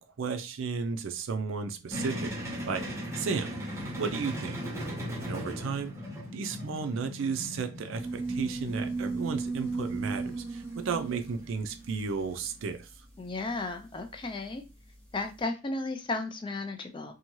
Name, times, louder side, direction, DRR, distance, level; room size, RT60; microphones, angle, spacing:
voice 1, 0.2-2.9 3.2-3.6 4.0-4.6 5.2-5.9 6.3-12.9, right 5 dB, 65° right, 0.4 m, -33 dB
sound 1, 1.9-12.6, equal, 15° right, 0.7 m, -39 dB
sound 2, 7.9-15.2, right 3 dB, 5° left, 0.9 m, -36 dB
voice 2, 13.2-14.6 15.1-17.1, left 3 dB, 25° left, 0.3 m, -34 dB
2.7 x 2.2 x 2.9 m
head